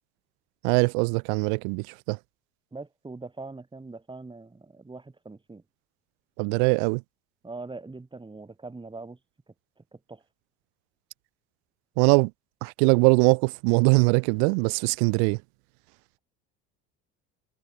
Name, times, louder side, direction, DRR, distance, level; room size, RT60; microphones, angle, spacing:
voice 1, 0.6-2.2 6.4-7.0 12.0-12.3 12.6-15.4, right 40 dB or more, 90° right, 1.7 m, -22 dB
voice 2, 2.7-5.6 7.4-9.2 9.8-10.2, right 3 dB, 15° right, 5.4 m, -42 dB
supercardioid pair, 105°, 32 cm